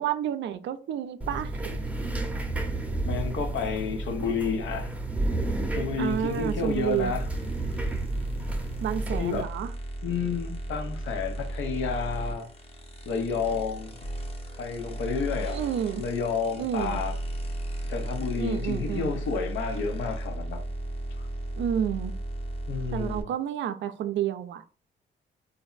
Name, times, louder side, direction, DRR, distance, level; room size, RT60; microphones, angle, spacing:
voice 1, 0.0-1.8 6.0-7.1 8.8-9.7 15.5-16.0 16.6-17.0 18.4-19.1 21.6-22.1 22.9-24.6, right 9 dB, 70° right, 0.4 m, -30 dB
sound 1, 1.2-9.4, right 2 dB, 5° right, 0.7 m, -31 dB
voice 2, 3.0-4.9 5.7-7.3 9.2-9.5 10.0-12.5 13.0-13.9 14.6-15.6 16.0-17.2 17.9-20.6 21.2-21.3 22.7-23.3, left 5 dB, 75° left, 0.8 m, -30 dB
sound 2, 6.0-23.2, right 1 dB, 30° left, 0.8 m, -35 dB
4.2 x 2.6 x 2.4 m
cardioid pair, 90°, 20 cm